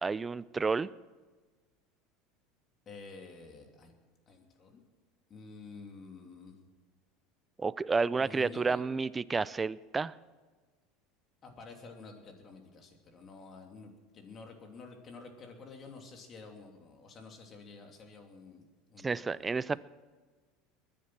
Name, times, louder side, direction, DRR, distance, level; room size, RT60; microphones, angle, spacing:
voice 1, 0.0-0.9 7.6-10.1 19.0-19.8, right 4 dB, 20° right, 18 dB, 0.5 m, -30 dB
voice 2, 2.9-3.9 4.3-4.8 5.3-6.6 8.2-8.8 11.4-19.7, left 4 dB, 35° left, 3 dB, 2.9 m, -50 dB
21.0 x 10.5 x 6.2 m, 1.4 s
supercardioid pair, 120°, 0 cm